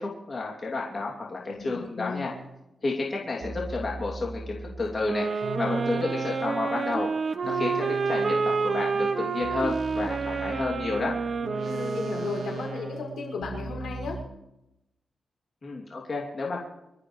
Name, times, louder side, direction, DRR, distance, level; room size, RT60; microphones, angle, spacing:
voice 1, 0.0-2.3 2.8-7.1 7.5-11.1 15.6-16.6, left 3 dB, 40° left, -3 dB, 2.8 m, -31 dB
voice 2, 1.5-2.3 11.6-14.2, left 4 dB, 85° left, -1 dB, 5.8 m, -35 dB
sound 1, 2.3-2.6 3.4-6.8 7.4-14.2, right 3 dB, 75° right, 2.6 m, -38 dB
sound 2, 5.0-12.9, right 4 dB, 50° right, 1.0 m, -29 dB
26.0 x 13.5 x 3.2 m, 0.90 s
cardioid pair, 95°, 0 cm